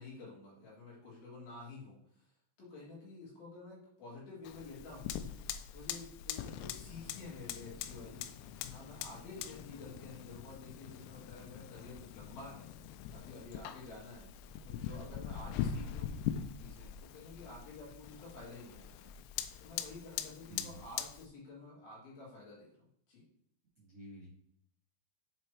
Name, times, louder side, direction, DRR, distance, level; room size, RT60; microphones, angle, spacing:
voice 1, 0.0-2.3 2.6-5.1 5.7-12.7 13.1-14.3 14.6-16.1 16.6-19.0 19.6-23.2, left 3 dB, 55° left, -5 dB, 3.3 m, -50 dB
Fire, 4.4-21.3, left 9 dB, 85° left, 3.2 m, -42 dB
voice 2, 20.5-20.8 23.8-24.3, right 1 dB, 80° right, -7 dB, 1.2 m, -50 dB
7.6 x 3.4 x 4.6 m, 0.70 s
omnidirectional pair, 6.0 m